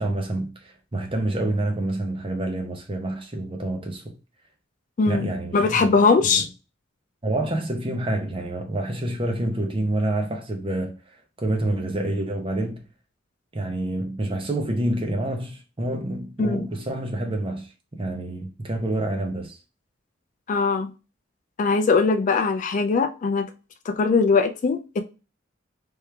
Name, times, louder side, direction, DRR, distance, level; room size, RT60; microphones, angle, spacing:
voice 1, 0.0-4.0 5.0-6.4 7.2-10.9 11.4-12.8 13.5-19.6, right 1 dB, 30° right, 0.8 m, -27 dB
voice 2, 5.0-6.5 16.4-16.7 20.5-20.9 21.6-23.5 23.9-25.0, left 4 dB, 40° left, 0.3 m, -21 dB
3.6 x 3.1 x 3.3 m
head